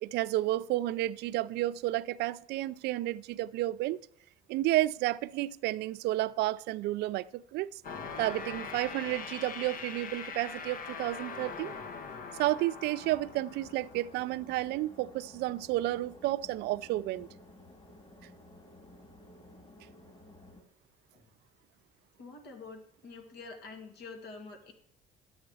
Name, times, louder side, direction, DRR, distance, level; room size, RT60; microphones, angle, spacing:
voice 1, 0.0-4.0 4.5-7.8 8.2-11.7 12.4-17.3, right 16 dB, 80° right, 0.4 m, -31 dB
sound 1, 7.8-14.4, left 5 dB, 55° left, 0.9 m, -42 dB
sound 2, 13.0-20.6, left 1 dB, 35° left, 2.2 m, -54 dB
voice 2, 22.2-24.7, left 4 dB, 80° left, 2.3 m, -47 dB
11.5 x 8.6 x 4.8 m
cardioid pair, 110°, 17 cm